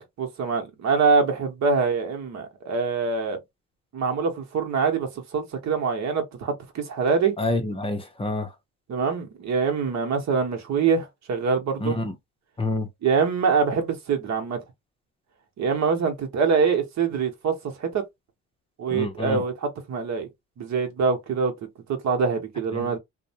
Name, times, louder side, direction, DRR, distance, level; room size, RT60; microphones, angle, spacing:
voice 1, 0.0-3.4 3.9-7.3 8.9-12.0 13.0-14.6 15.6-18.0 18.8-20.3 20.6-21.5 21.9-23.0, right 5 dB, 65° right, 1.0 m, -24 dB
voice 2, 7.4-8.5 11.8-12.1 12.6-12.9 18.9-19.4 22.7-22.9, left 2 dB, 20° left, 0.6 m, -27 dB
2.6 x 2.1 x 2.7 m
cardioid pair, 90°, 30 cm